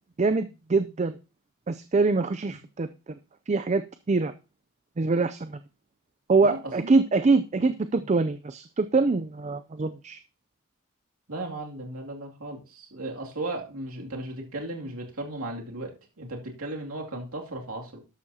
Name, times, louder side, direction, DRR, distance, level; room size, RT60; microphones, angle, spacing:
voice 1, 0.2-1.2 1.7-3.2 3.5-3.8 4.1-4.3 5.0-5.6 6.3-10.2, right 3 dB, 30° right, 11 dB, 0.4 m, -24 dB
voice 2, 11.3-18.0, right 2 dB, 90° right, 0 dB, 2.5 m, -36 dB
13.0 x 11.5 x 2.8 m, 0.32 s
head